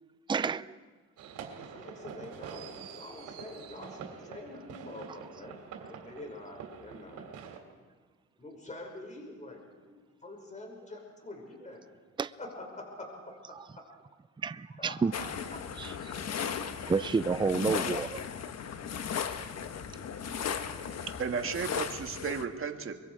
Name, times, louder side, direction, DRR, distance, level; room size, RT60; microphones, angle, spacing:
voice 1, 0.3-0.8 12.2-12.3 13.5-13.6 14.4-15.1 15.8-15.9 16.9-18.2, right 5 dB, 15° right, 14 dB, 0.5 m, -30 dB
sound 1, 1.2-7.6, right 7 dB, 90° right, 3.0 m, -46 dB
voice 2, 1.5-5.6 5.9-7.3 8.4-11.8 12.4-13.8 14.8-15.6 16.8-17.1, left 2 dB, 25° left, 1 dB, 5.7 m, -46 dB
sound 2, 15.1-22.5, left 7 dB, 60° left, 1.3 m, -36 dB
voice 3, 21.2-23.0, right 6 dB, 45° right, 5 dB, 1.8 m, -34 dB
24.5 x 22.0 x 4.8 m, 1.4 s
cardioid pair, 90°, 30 cm